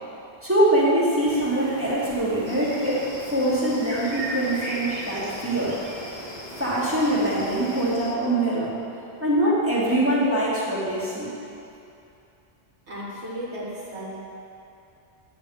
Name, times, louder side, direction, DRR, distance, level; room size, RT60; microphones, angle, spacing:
voice 1, 0.4-5.8 6.6-8.8 9.2-11.3, right 1 dB, 10° right, -9 dB, 1.9 m, -23 dB
sound 1, 1.2-7.9, right 1 dB, 35° right, 1.0 m, -38 dB
sound 2, 2.5-8.2, left 2 dB, 30° left, 0.8 m, -41 dB
voice 2, 12.9-14.2, equal, 80° right, -7 dB, 1.8 m, -35 dB
9.8 x 3.7 x 7.0 m, 2.7 s
omnidirectional pair, 1.1 m